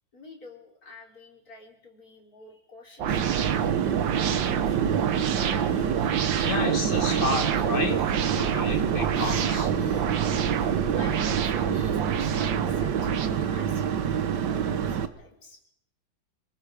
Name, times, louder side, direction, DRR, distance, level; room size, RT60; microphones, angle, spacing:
voice 1, 0.1-3.6 3.9-5.9 10.3-10.4 11.0-14.0 14.4-15.6, left 2 dB, 50° left, 0 dB, 4.0 m, -48 dB
sound 1, 3.0-13.3, right 8 dB, 85° right, 1.8 m, -28 dB
sound 2, 3.1-15.1, right 8 dB, 65° right, 1.6 m, -27 dB
sound 3, 5.7-11.9, right 2 dB, 50° right, 4.6 m, -52 dB
voice 2, 6.4-8.0 8.3-9.7, left 2 dB, 25° left, 4 dB, 2.6 m, -30 dB
27.5 x 19.0 x 5.1 m, 0.74 s
omnidirectional pair, 2.0 m